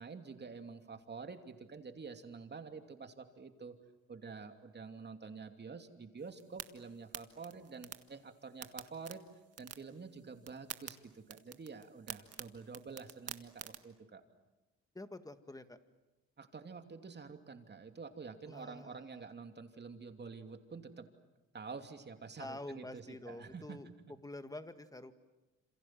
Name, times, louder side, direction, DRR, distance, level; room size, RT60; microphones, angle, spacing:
voice 1, 0.0-3.7 4.1-9.2 9.6-14.2 16.4-21.1 21.5-23.8, right 5 dB, 35° right, 6 dB, 2.8 m, -48 dB
sound 1, 6.2-13.8, right 8 dB, 55° right, 1.7 m, -50 dB
voice 2, 14.9-15.8 18.5-19.2 22.4-23.9 24.2-25.1, left 2 dB, 10° left, 9 dB, 1.9 m, -47 dB
27.5 x 27.5 x 7.7 m, 1.1 s
cardioid pair, 90°, 30 cm